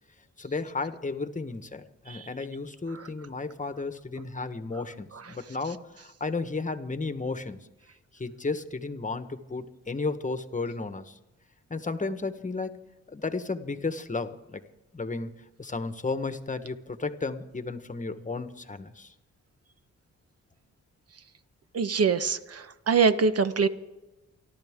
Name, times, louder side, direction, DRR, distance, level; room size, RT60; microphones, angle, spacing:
voice 1, 0.4-7.7 8.1-11.2 11.7-12.8 13.1-14.6 14.9-15.3 15.6-19.1, left 3 dB, 25° left, 10 dB, 1.3 m, -33 dB
voice 2, 21.7-23.7, right 5 dB, 50° right, 11 dB, 1.1 m, -24 dB
28.5 x 12.0 x 3.7 m, 1.0 s
cardioid pair, 75°, 30 cm